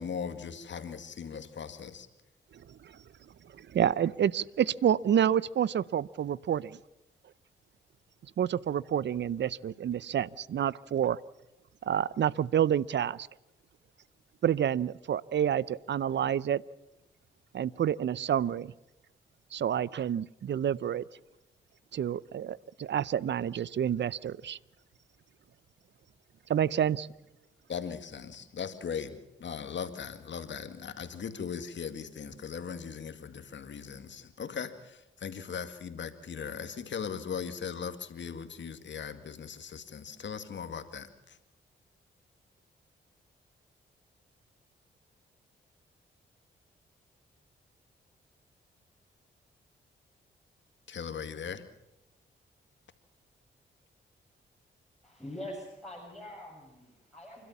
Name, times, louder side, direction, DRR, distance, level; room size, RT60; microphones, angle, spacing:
voice 1, 0.0-2.1 27.7-41.4 50.9-51.6, left 6 dB, 65° left, 9 dB, 2.2 m, -39 dB
voice 2, 3.5-6.8 8.4-11.2 11.8-13.3 14.4-16.6 17.5-18.7 19.5-21.0 21.9-24.6 26.5-27.1, right 9 dB, 60° right, 22 dB, 0.6 m, -28 dB
voice 3, 55.0-57.5, left 1 dB, ahead, -4 dB, 7.1 m, -44 dB
28.5 x 12.5 x 7.2 m, 0.95 s
supercardioid pair, 55°, 20 cm